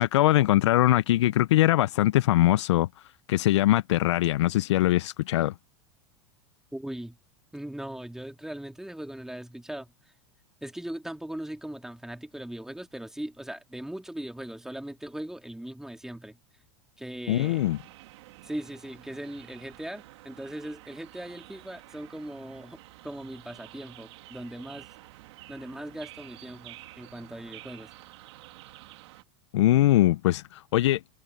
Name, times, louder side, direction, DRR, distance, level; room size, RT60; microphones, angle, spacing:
voice 1, 0.0-2.9 3.3-5.5 17.3-17.8 29.5-31.0, left 15 dB, 85° left, 0.4 m, -22 dB
voice 2, 6.7-7.2 7.5-9.9 10.6-16.4 17.0-17.7 18.4-24.9 25.5-27.9, right 1 dB, 5° right, 2.5 m, -39 dB
sound 1, 17.4-29.2, right 19 dB, 75° right, 2.1 m, -50 dB
hypercardioid pair, 105°, 15 cm